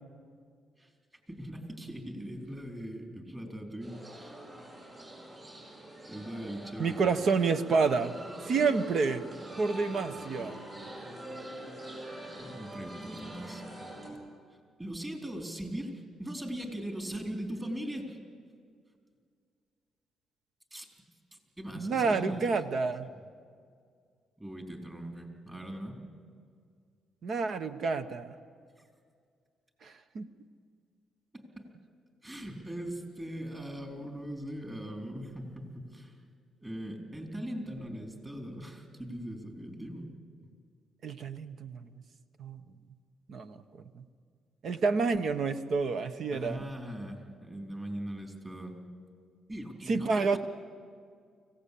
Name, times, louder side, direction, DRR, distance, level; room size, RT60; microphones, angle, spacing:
voice 1, 1.3-4.4 6.1-7.2 12.4-13.7 14.8-18.2 20.7-20.9 21.3-22.4 23.1-23.2 24.4-26.0 31.3-31.7 32.2-36.2 36.6-40.1 46.3-48.7 49.5-50.4, right 1 dB, 20° right, 2 dB, 4.2 m, -40 dB
sound 1, 3.8-14.1, right 1 dB, 40° right, 7.1 m, -44 dB
voice 2, 6.8-8.1 8.4-9.2 9.6-10.6 21.8-23.1 27.2-28.3 29.8-30.3 41.0-41.8 42.4-42.6 43.3-43.6 43.9-44.0 44.6-46.6 49.9-50.4, right 4 dB, 60° right, 10 dB, 1.1 m, -29 dB
24.5 x 17.0 x 8.6 m, 2.2 s
cardioid pair, 90°, 0 cm